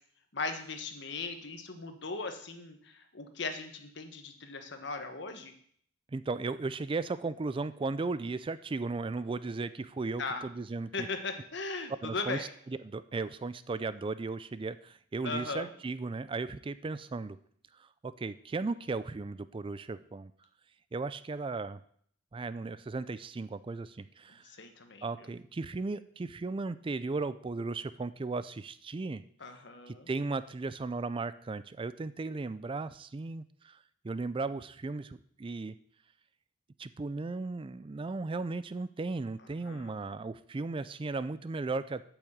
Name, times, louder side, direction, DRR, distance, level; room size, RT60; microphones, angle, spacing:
voice 1, 0.3-5.5 10.2-10.5 10.9-12.5 15.2-15.7 24.4-25.3 29.4-30.1 39.6-39.9, left 3 dB, 65° left, 7 dB, 1.3 m, -38 dB
voice 2, 6.1-11.1 12.0-17.4 17.8-20.3 20.9-21.8 22.3-24.4 25.0-29.2 29.9-35.8 36.8-42.0, right 3 dB, 25° right, 15 dB, 0.4 m, -36 dB
8.5 x 6.2 x 8.0 m, 0.62 s
head